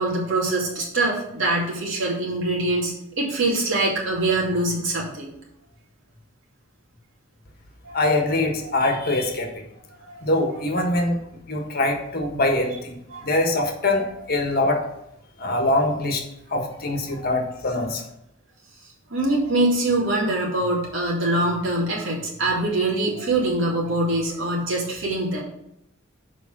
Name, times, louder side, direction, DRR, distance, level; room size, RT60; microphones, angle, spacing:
voice 1, 0.0-5.3 7.8-8.0 10.1-10.2 13.1-13.2 13.5-13.6 16.9-17.2 19.1-25.4, right 2 dB, 75° right, -4 dB, 2.7 m, -24 dB
voice 2, 7.9-9.5 10.2-11.2 11.5-13.0 13.2-14.8 15.4-16.2 16.5-18.0, left 2 dB, 50° left, 2 dB, 1.5 m, -23 dB
7.1 x 5.0 x 6.0 m, 0.80 s
head